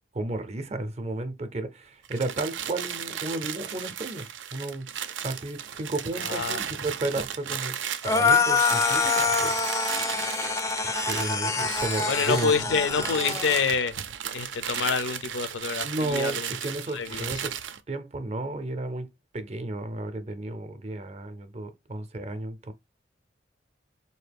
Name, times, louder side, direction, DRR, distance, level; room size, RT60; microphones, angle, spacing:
voice 1, 0.1-4.3 4.5-4.9 5.2-7.7 8.0-9.6 10.8-12.5 15.8-17.6 17.9-19.1 19.3-22.7, right 2 dB, 35° right, 0.5 m, -33 dB
sound 1, 2.0-17.8, right 9 dB, 85° right, 0.5 m, -35 dB
voice 2, 6.2-6.7 11.7-13.9 14.3-16.6 16.9-17.4, left 5 dB, 75° left, 0.5 m, -27 dB
sound 2, 8.0-13.7, left 4 dB, 15° left, 0.3 m, -25 dB
4.1 x 2.7 x 3.3 m
head